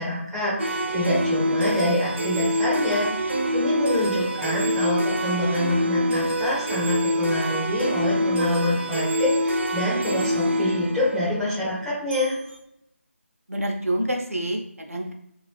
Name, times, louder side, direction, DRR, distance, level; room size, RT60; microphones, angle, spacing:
voice 1, 0.0-12.4, left 1 dB, ahead, -13 dB, 0.4 m, -26 dB
sound 1, 0.6-12.3, equal, 55° right, 0.6 m, -25 dB
voice 2, 4.2-4.6 13.5-15.1, right 1 dB, 85° right, 1 dB, 0.8 m, -28 dB
2.8 x 2.5 x 3.3 m, 0.73 s
figure-of-eight pair, 160°, 8 cm